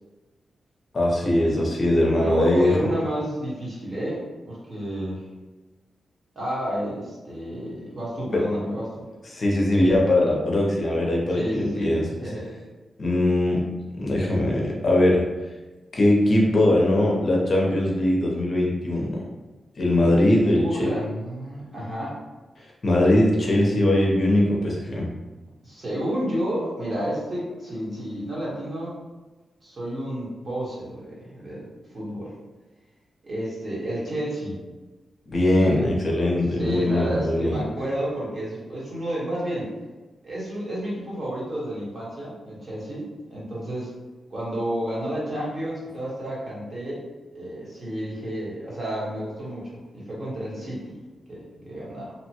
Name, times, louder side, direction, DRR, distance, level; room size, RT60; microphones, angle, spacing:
voice 1, 0.9-2.9 8.3-8.4 9.3-12.1 13.0-13.6 13.9-15.3 15.9-19.2 19.8-20.9 22.6-25.1 35.3-37.6, left 1 dB, 45° left, -2 dB, 0.6 m, -21 dB
voice 2, 2.2-5.3 6.3-9.1 11.3-12.5 20.0-22.2 25.6-28.9 29.6-32.3 33.2-34.6 36.6-39.7 40.2-43.9 44.3-47.0 47.3-50.9 51.3-52.1, equal, 40° right, -7 dB, 1.2 m, -31 dB
2.8 x 2.1 x 2.8 m, 1.2 s
wide cardioid pair, 105°, 0 cm